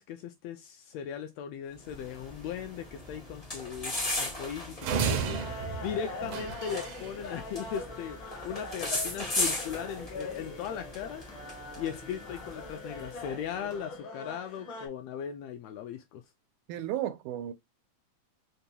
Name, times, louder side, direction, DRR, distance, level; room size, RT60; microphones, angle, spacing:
voice 1, 0.0-8.2 8.4-11.2 11.8-16.2, left 8 dB, 80° left, 1.6 m, -38 dB
sound 1, 1.8-13.5, left 2 dB, 40° left, 0.5 m, -38 dB
sound 2, 4.8-7.1, right 6 dB, 70° right, 1.5 m, -32 dB
sound 3, 5.3-14.9, left 2 dB, 65° left, 1.2 m, -42 dB
voice 2, 16.7-17.5, right 12 dB, 85° right, 2.1 m, -33 dB
5.2 x 2.3 x 2.7 m
omnidirectional pair, 3.3 m